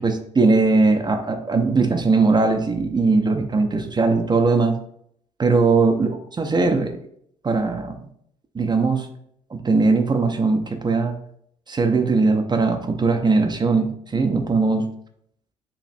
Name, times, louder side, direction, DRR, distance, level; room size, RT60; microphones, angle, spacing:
voice 1, 0.0-4.8 5.4-7.0 7.4-8.0 8.5-9.1 9.5-11.2 11.7-14.9, right 3 dB, 25° right, 5 dB, 0.5 m, -20 dB
4.2 x 2.9 x 2.5 m, 0.69 s
hypercardioid pair, 55°, 17 cm